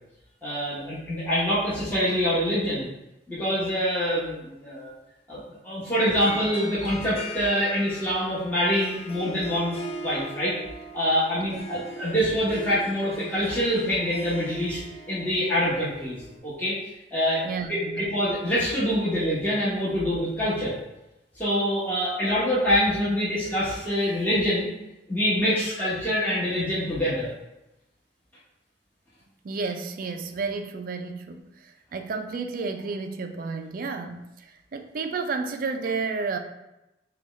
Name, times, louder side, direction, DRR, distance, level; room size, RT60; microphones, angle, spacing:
voice 1, 0.4-2.9 3.3-4.9 5.3-10.5 10.9-14.8 15.1-16.8 17.1-20.7 21.4-24.7 25.1-27.3, equal, 10° left, -11 dB, 0.9 m, -25 dB
Harp, 6.1-16.4, right 1 dB, 35° left, 0.4 m, -40 dB
voice 2, 11.4-11.8 17.4-18.2 29.4-36.4, right 4 dB, 50° right, 6 dB, 0.4 m, -32 dB
5.2 x 2.3 x 3.1 m, 0.93 s
head